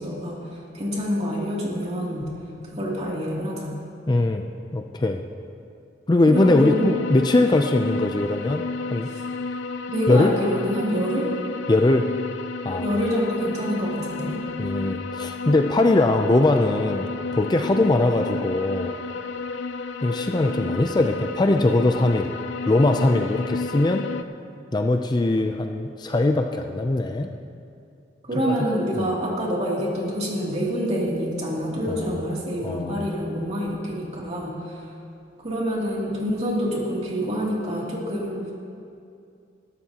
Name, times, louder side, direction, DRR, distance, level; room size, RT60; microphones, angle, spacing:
voice 1, 0.0-2.3 2.7-3.8 6.3-6.9 9.1-9.2 9.9-11.3 12.8-14.4 28.2-34.8 35.4-38.5, equal, 40° right, -4 dB, 2.8 m, -26 dB
voice 2, 4.1-4.4 4.7-5.2 6.1-8.6 8.9-9.1 10.1-10.3 11.7-12.0 12.6-13.0 14.6-17.1 17.3-18.9 20.0-22.3 22.7-24.0 24.7-27.3 29.0-29.1 31.9-32.0 32.6-33.0, left 2 dB, 25° left, 5 dB, 0.4 m, -21 dB
sound 1, 6.3-24.2, left 4 dB, 85° left, 0.5 m, -32 dB
20.0 x 12.5 x 2.9 m, 2.5 s
head